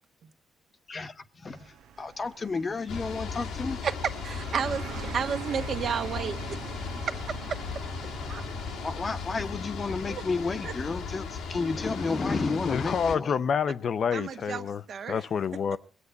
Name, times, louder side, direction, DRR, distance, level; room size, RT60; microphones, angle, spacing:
voice 1, 0.9-3.8 8.8-13.4, left 4 dB, 35° left, 1.1 m, -32 dB
sound 1, 1.5-10.3, right 8 dB, 80° right, 1.0 m, -45 dB
sound 2, 2.9-13.2, left 5 dB, 85° left, 1.9 m, -36 dB
voice 2, 4.2-6.6 7.0-7.4 8.3-8.4 10.1-10.2 10.6-10.7 14.1-15.2, right 7 dB, 60° right, 1.6 m, -32 dB
voice 3, 12.7-14.8 15.1-15.8, left 6 dB, 55° left, 0.6 m, -28 dB
19.5 x 8.2 x 8.2 m
cardioid pair, 90°, 0 cm